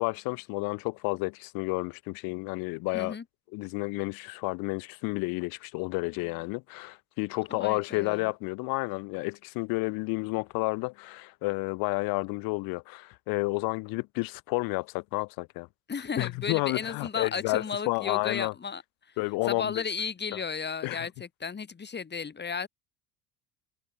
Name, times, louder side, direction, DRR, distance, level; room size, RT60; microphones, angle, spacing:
voice 1, 0.0-3.1 3.5-15.7 16.2-18.5 19.2-19.7 20.8-21.0, left 26 dB, 60° left, 1.2 m, -31 dB
voice 2, 2.9-3.2 7.5-8.3 15.9-19.2 19.4-22.7, left 6 dB, 25° left, 5.6 m, -34 dB
hypercardioid pair, 80°, 39 cm